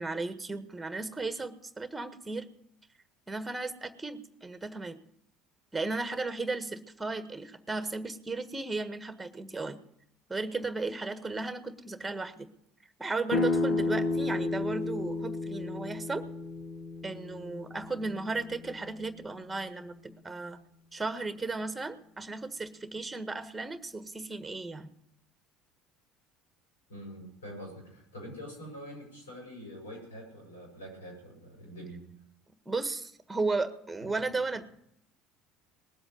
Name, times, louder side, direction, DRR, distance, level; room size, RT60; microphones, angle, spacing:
voice 1, 0.0-2.5 3.3-5.0 5.7-9.8 10.3-12.5 13.0-16.2 17.0-20.6 20.9-24.9 32.6-34.6, right 3 dB, 15° right, 10 dB, 1.5 m, -35 dB
sound 1, 13.3-18.9, left 3 dB, 55° left, 1.6 m, -32 dB
voice 2, 26.9-32.0, equal, 80° left, 0 dB, 7.1 m, -45 dB
19.5 x 8.0 x 8.1 m, 0.75 s
figure-of-eight pair, 60°, 0 cm